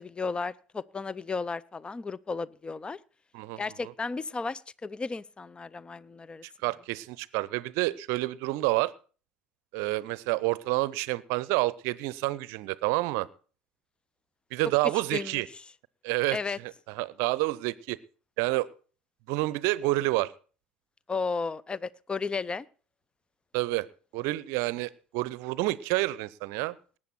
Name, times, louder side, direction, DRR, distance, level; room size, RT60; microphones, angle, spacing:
voice 1, 0.0-3.0 3.6-6.4 15.1-15.4 16.3-16.6 21.1-22.7, left 4 dB, 20° left, 0.5 m, -34 dB
voice 2, 3.3-3.9 6.6-8.9 9.7-13.3 14.5-15.5 16.0-18.0 18.4-18.7 19.3-20.3 23.5-23.9 24.1-26.7, right 20 dB, 60° right, 0.6 m, -29 dB
19.0 x 8.7 x 4.3 m
figure-of-eight pair, 65°, 5 cm